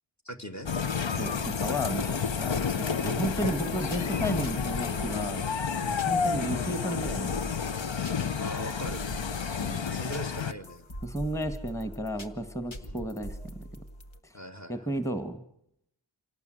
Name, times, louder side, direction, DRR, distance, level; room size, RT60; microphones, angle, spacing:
voice 1, 0.2-0.7 3.2-3.6 5.8-6.1 8.4-9.0 9.9-10.8 12.8-13.1 14.3-14.9, equal, 35° left, 9 dB, 2.3 m, -40 dB
sound 1, 0.6-10.5, left 6 dB, 70° left, 0.9 m, -30 dB
voice 2, 1.2-5.5 6.1-7.5 9.6-9.8 11.0-13.7 14.2-14.4 14.7-15.4, right 1 dB, 5° left, 10 dB, 1.8 m, -33 dB
sound 2, 3.2-14.2, equal, 85° left, 1.7 m, -43 dB
26.5 x 18.0 x 7.9 m, 0.74 s
wide cardioid pair, 50°, 46 cm